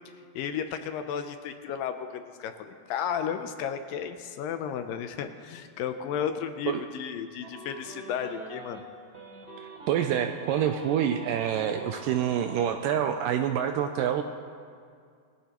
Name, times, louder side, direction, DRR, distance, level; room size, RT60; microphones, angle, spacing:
voice 1, 0.4-8.8, left 8 dB, 80° left, 7 dB, 2.2 m, -33 dB
sound 1, 7.4-8.8 9.1-12.7, right 2 dB, 30° right, 1.0 m, -44 dB
voice 2, 9.9-14.2, right 9 dB, 80° right, 6 dB, 2.0 m, -27 dB
21.5 x 15.0 x 3.0 m, 2.2 s
omnidirectional pair, 4.3 m